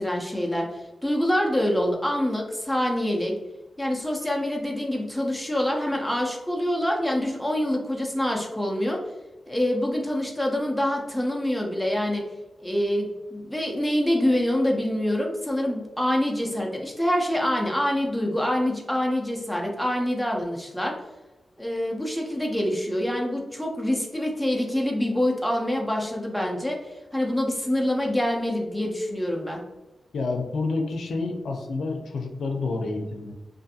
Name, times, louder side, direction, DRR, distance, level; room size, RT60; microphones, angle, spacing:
voice 1, 0.0-3.3 3.8-9.0 9.5-12.2 12.6-21.0 21.6-26.8 27.1-29.6, left 1 dB, ahead, -1 dB, 0.4 m, -26 dB
voice 2, 30.1-33.3, left 3 dB, 85° left, 3 dB, 0.4 m, -29 dB
2.4 x 2.4 x 2.6 m, 1.1 s
wide cardioid pair, 180°, 0 cm